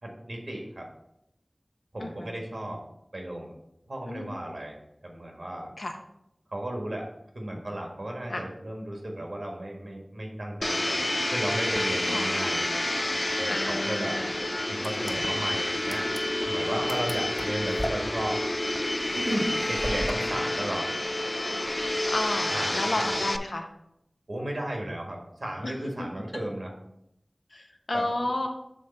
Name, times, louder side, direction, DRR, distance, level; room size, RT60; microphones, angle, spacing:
voice 1, 0.0-0.9 1.9-2.8 3.1-3.5 3.9-4.8 5.0-5.7 6.5-7.1 7.3-12.8 13.4-14.2 14.7-16.0 16.4-18.4 19.2-20.9 22.5-23.1 24.3-26.7 27.9-28.0, right 1 dB, 80° right, 0 dB, 1.6 m, -34 dB
voice 2, 2.0-2.4 4.0-4.3 5.8-6.0 8.3-8.4 12.0-12.5 13.5-14.3 16.8-16.9 20.2-20.3 22.1-23.7 25.6-25.7 27.5-28.5, left 2 dB, 90° left, 3 dB, 0.9 m, -32 dB
Domestic sounds home sounds, 10.6-23.4, left 1 dB, 35° left, 0.4 m, -29 dB
sound 1, 14.7-20.1, equal, ahead, 0.8 m, -38 dB
6.5 x 3.7 x 5.5 m, 0.79 s
wide cardioid pair, 40°, 0 cm